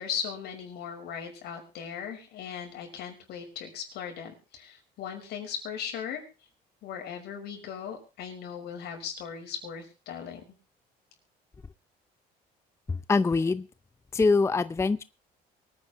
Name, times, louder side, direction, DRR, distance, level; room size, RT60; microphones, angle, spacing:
voice 1, 0.0-6.2 6.8-10.4, left 7 dB, 75° left, 3 dB, 5.9 m, -38 dB
voice 2, 12.9-13.7 14.1-15.0, left 4 dB, 15° left, 15 dB, 0.6 m, -24 dB
24.0 x 9.7 x 3.0 m, 0.33 s
cardioid pair, 110°, 17 cm